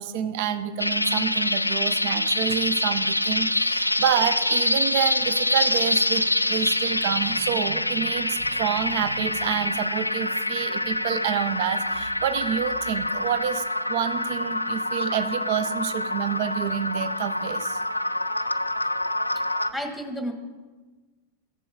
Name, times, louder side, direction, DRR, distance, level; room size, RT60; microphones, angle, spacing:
voice 1, 0.0-17.8, right 9 dB, 50° right, 11 dB, 0.6 m, -28 dB
sound 1, 0.8-19.7, left 1 dB, 85° left, 0.3 m, -26 dB
voice 2, 19.7-20.3, equal, ahead, 5 dB, 1.6 m, -31 dB
14.5 x 6.9 x 3.7 m, 1.3 s
figure-of-eight pair, 90°, 0 cm